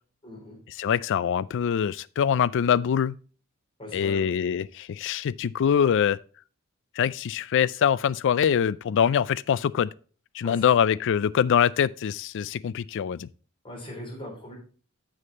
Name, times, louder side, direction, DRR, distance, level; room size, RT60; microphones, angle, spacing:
voice 1, 0.2-0.6 3.8-4.3 10.4-10.8 13.6-14.5, left 1 dB, 25° left, 4.0 m, -40 dB
voice 2, 0.8-3.2 3.9-6.2 7.0-9.9 10.3-13.3, left 8 dB, 60° left, 0.3 m, -24 dB
7.7 x 6.4 x 4.0 m
head